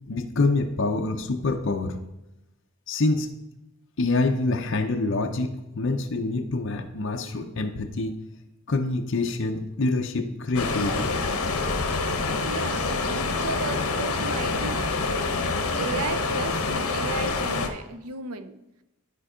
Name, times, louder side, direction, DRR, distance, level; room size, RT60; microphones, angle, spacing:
voice 1, 0.1-2.0 2.9-3.3 4.0-8.2 8.7-11.1, left 3 dB, 55° left, 4 dB, 0.7 m, -26 dB
sound 1, 10.5-17.7, left 3 dB, 80° left, 1.0 m, -26 dB
voice 2, 12.4-15.2 15.8-18.6, right 4 dB, 80° right, 11 dB, 0.7 m, -35 dB
12.5 x 4.5 x 5.0 m, 0.92 s
head